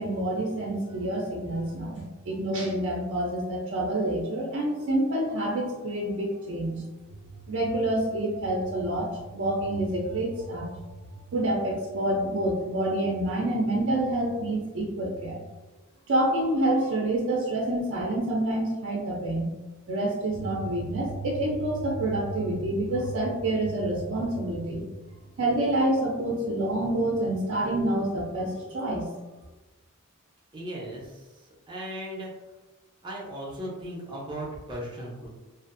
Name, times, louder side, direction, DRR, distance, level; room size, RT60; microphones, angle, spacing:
voice 1, 0.0-6.8 7.5-10.9 11.3-15.4 16.1-19.5 19.9-24.8 25.4-29.1, right 1 dB, 60° right, -3 dB, 0.5 m, -27 dB
voice 2, 30.5-31.3 31.7-32.3 33.0-35.3, right 1 dB, 20° right, -4 dB, 0.7 m, -37 dB
2.6 x 2.4 x 2.5 m, 1.1 s
head